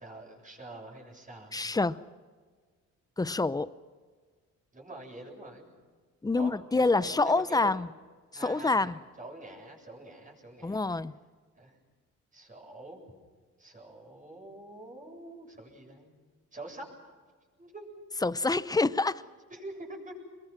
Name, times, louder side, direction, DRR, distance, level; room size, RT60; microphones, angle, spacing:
voice 1, 0.0-1.5 4.7-5.7 6.3-7.8 8.3-10.9 11.6-11.7 12.3-13.0 13.6-16.2 16.5-16.9 17.6-18.0 19.5-20.1, right 2 dB, 25° right, 1 dB, 7.7 m, -45 dB
voice 2, 1.5-2.0 3.2-3.7 6.2-7.9 8.4-9.0 10.6-11.1 18.2-19.2, left 3 dB, 15° left, 17 dB, 0.7 m, -27 dB
26.5 x 22.0 x 6.1 m, 1.5 s
cardioid pair, 90°, 30 cm